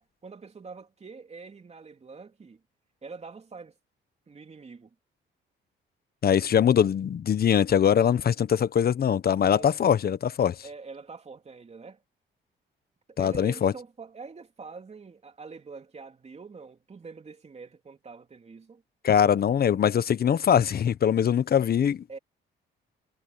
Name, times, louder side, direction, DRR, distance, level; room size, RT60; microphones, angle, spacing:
voice 1, 0.0-2.6 3.0-3.7 4.3-4.9 9.4-9.7 10.6-12.0 13.1-18.8 22.1-22.2, right 4 dB, 35° right, 3.3 m, -45 dB
voice 2, 6.2-10.6 13.2-13.7 19.0-22.2, left 8 dB, 50° left, 1.1 m, -22 dB
cardioid pair, 90°, 20 cm